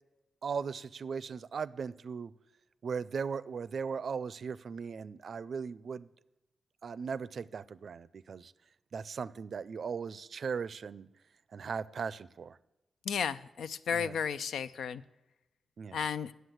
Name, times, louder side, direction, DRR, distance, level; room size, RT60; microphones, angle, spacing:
voice 1, 0.4-2.3 2.8-6.1 6.8-8.5 8.9-11.1 11.5-12.6 13.9-14.1 15.8-16.0, right 6 dB, 65° right, 18 dB, 0.4 m, -38 dB
voice 2, 13.0-15.0 15.9-16.3, left 7 dB, 90° left, 14 dB, 0.4 m, -33 dB
9.9 x 7.9 x 7.8 m, 0.96 s
cardioid pair, 75°, 0 cm